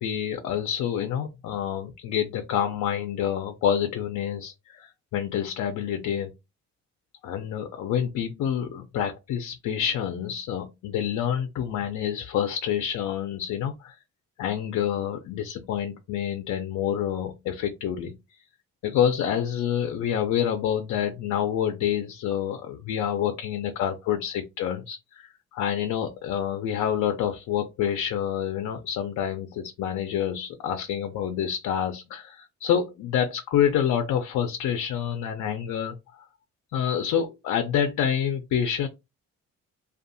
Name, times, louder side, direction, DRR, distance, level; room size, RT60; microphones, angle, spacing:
voice 1, 0.0-6.3 7.2-14.0 14.4-18.1 18.8-36.0 36.7-38.9, left 9 dB, 70° left, 0.5 m, -27 dB
2.6 x 2.3 x 2.5 m
cardioid pair, 90°, 30 cm